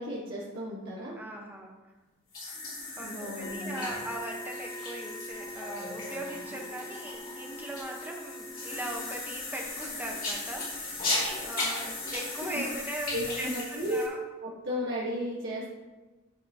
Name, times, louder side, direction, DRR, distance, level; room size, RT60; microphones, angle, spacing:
voice 1, 0.0-1.2 2.9-3.8 12.5-12.6 13.1-14.1 14.4-15.7, equal, 60° right, -7 dB, 1.5 m, -34 dB
voice 2, 1.2-1.7 3.0-11.2 11.4-14.2, right 1 dB, 10° right, 0 dB, 1.1 m, -40 dB
sound 1, 2.3-14.1, left 2 dB, 40° left, 2.7 m, -36 dB
sound 2, 3.4-9.1, equal, 65° left, 1.3 m, -43 dB
12.5 x 4.8 x 2.9 m, 1.2 s
head